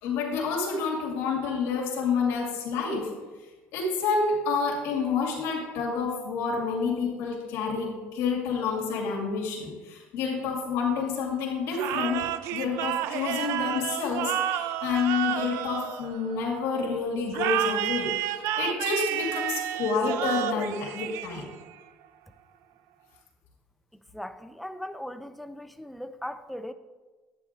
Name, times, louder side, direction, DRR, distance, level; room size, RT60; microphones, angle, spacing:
voice 1, 0.0-3.1 3.7-21.5, left 5 dB, 80° left, -2 dB, 2.4 m, -29 dB
sound 1, 11.7-16.6 17.3-21.7, right 12 dB, 80° right, 0.4 m, -30 dB
voice 2, 24.1-26.7, left 1 dB, ahead, 10 dB, 0.5 m, -38 dB
10.5 x 9.0 x 3.6 m, 1.3 s
cardioid pair, 115°, 5 cm